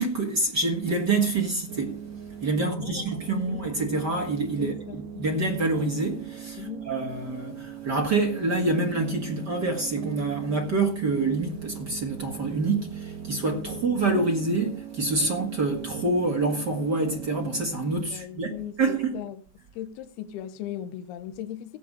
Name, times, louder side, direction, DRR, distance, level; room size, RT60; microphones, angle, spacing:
voice 1, 0.0-2.0 2.4-18.5 18.8-19.2, right 3 dB, 45° right, 1.4 m, -27 dB
sound 1, 1.7-17.7, right 9 dB, 75° right, 1.6 m, -40 dB
voice 2, 2.6-3.7 4.6-5.4 6.6-6.9 13.6-13.8 17.9-19.4 19.7-21.8, left 11 dB, 75° left, 2.7 m, -38 dB
16.5 x 8.4 x 5.0 m
omnidirectional pair, 4.8 m